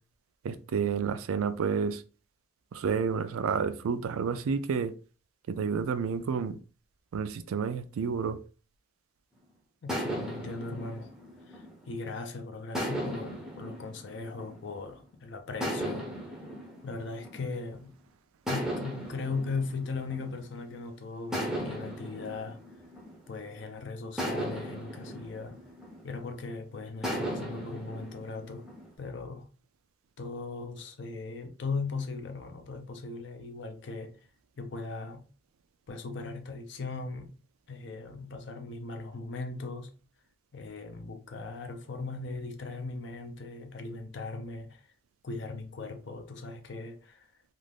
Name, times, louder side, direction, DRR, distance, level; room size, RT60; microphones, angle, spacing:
voice 1, 0.4-2.0 2.7-4.9 5.5-6.6 7.1-8.4, right 6 dB, 90° right, 0.4 m, -30 dB
voice 2, 9.8-11.1 11.5-16.1 16.8-18.0 18.5-22.6 23.3-25.6 26.0-28.7 29.0-29.5 30.2-34.2 34.6-35.3 35.9-37.3 37.7-39.9 40.5-44.8 45.2-47.3, left 3 dB, 60° left, 0.5 m, -38 dB
sound 1, 9.9-12.1 12.7-15.0 15.6-17.9 18.5-20.7 21.3-23.6 24.2-26.4 27.0-28.9, equal, ahead, 0.5 m, -37 dB
2.5 x 2.4 x 3.4 m
head